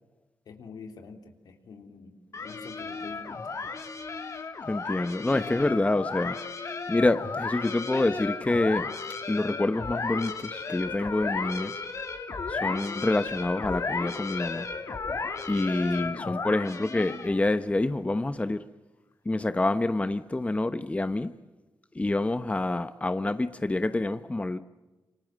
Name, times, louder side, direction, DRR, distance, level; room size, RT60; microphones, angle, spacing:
voice 1, 0.5-3.5 15.9-16.2, left 4 dB, 80° left, 3.5 m, -47 dB
sound 1, 2.3-17.5, left 4 dB, 50° left, 3.4 m, -34 dB
voice 2, 4.7-6.4 6.9-8.9 9.3-11.7 12.5-14.7 15.5-18.6 19.3-21.3 22.0-24.6, left 2 dB, 20° left, 1.1 m, -27 dB
28.0 x 26.0 x 7.7 m
cardioid pair, 75°, 7 cm